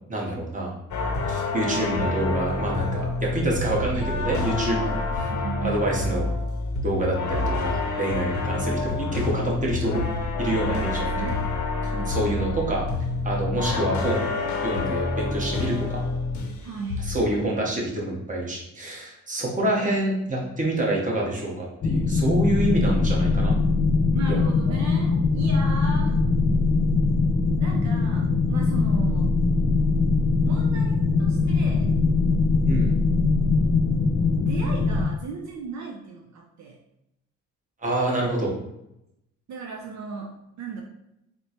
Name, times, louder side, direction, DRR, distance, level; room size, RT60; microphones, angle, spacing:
voice 1, 0.1-0.7 1.3-5.0 5.6-6.3 6.8-10.0 10.4-11.1 11.8-12.8 13.2-14.3 14.6-16.0 17.1-23.5 24.3-24.4 32.6-32.9 37.8-38.5, right 1 dB, 25° right, -2 dB, 1.0 m, -27 dB
sound 1, 0.9-16.6 16.9-17.3, left 3 dB, 70° left, 0.7 m, -28 dB
voice 2, 5.3-5.8 10.9-11.5 11.9-12.2 16.6-17.1 24.1-26.2 27.6-29.4 30.4-31.9 34.4-36.8 39.5-40.8, right 4 dB, 65° right, 1 dB, 0.5 m, -36 dB
sound 2, 21.8-35.1, left 3 dB, 35° left, 0.4 m, -21 dB
4.1 x 2.1 x 2.9 m, 0.84 s
cardioid pair, 90°, 30 cm